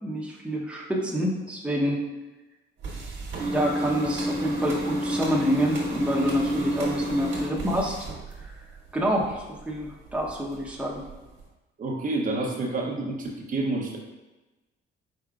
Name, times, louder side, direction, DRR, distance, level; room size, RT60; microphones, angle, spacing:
voice 1, 0.0-2.0 3.5-8.0 8.4-8.6 8.9-11.0, equal, 5° right, -3 dB, 0.9 m, -27 dB
sound 1, 2.8-8.8 9.1-9.9 10.3-10.5 11.1-11.2 11.4-11.5, equal, 65° right, 1.5 m, -29 dB
voice 2, 11.8-14.0, right 2 dB, 45° right, -1 dB, 0.8 m, -28 dB
5.0 x 4.2 x 2.4 m, 1.1 s
cardioid pair, 90°, 20 cm